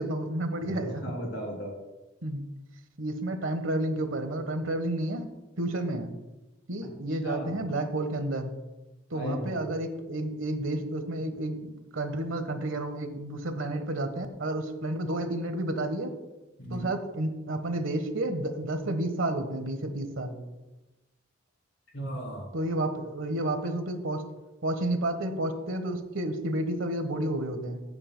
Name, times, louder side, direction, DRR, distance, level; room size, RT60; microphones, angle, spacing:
voice 1, 0.0-1.2 2.2-2.4 3.0-6.1 6.7-8.6 9.1-16.1 16.7-20.4 22.5-24.2 24.6-27.8, right 1 dB, 85° right, 7 dB, 1.2 m, -31 dB
voice 2, 0.7-1.7 7.2-7.6 9.1-9.6 16.6-16.9 21.9-22.5, equal, 60° left, 0 dB, 2.9 m, -35 dB
15.5 x 8.7 x 2.2 m, 1.1 s
head